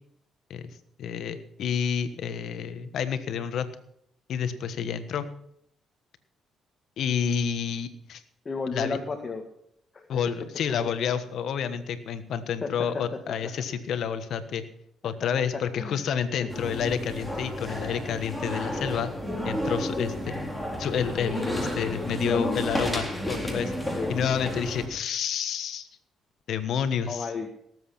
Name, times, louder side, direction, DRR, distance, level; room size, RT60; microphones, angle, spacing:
voice 1, 0.5-3.7 4.3-5.3 7.0-8.2 8.7-9.0 10.1-14.6 15.0-19.1 19.4-20.5 20.8-23.7 24.1-25.9 26.5-27.3, left 7 dB, 70° left, 11 dB, 1.3 m, -29 dB
voice 2, 8.5-9.4 9.9-10.1 12.6-13.4 15.2-16.0 16.4-16.5 19.7-20.1 22.3-22.8 24.0-24.1 27.1-27.5, left 4 dB, 35° left, 3 dB, 1.8 m, -34 dB
sound 1, 16.5-24.9, equal, ahead, 3.8 m, -31 dB
18.5 x 7.9 x 5.9 m, 0.72 s
cardioid pair, 90°, 0 cm